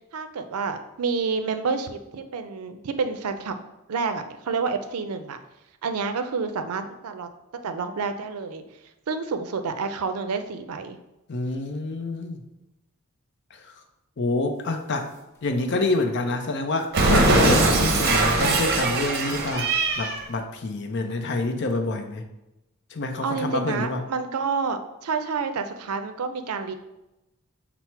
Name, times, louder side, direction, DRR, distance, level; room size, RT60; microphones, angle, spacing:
voice 1, 0.1-3.6 3.9-5.4 5.8-7.3 7.6-8.6 9.1-11.0 23.2-26.7, right 5 dB, 85° right, 8 dB, 0.4 m, -29 dB
voice 2, 11.3-12.4 13.5-13.7 14.2-15.1 15.4-22.2 22.9-24.0, left 2 dB, 50° left, 6 dB, 0.5 m, -27 dB
sound 1, 15.1-15.4 15.7-15.8 16.8-17.7 18.5-18.6 20.2-20.3, left 2 dB, 10° left, 0.6 m, -26 dB
Cat, 16.9-20.2, right 2 dB, 45° right, 0.6 m, -21 dB
5.7 x 2.0 x 4.4 m, 0.93 s
head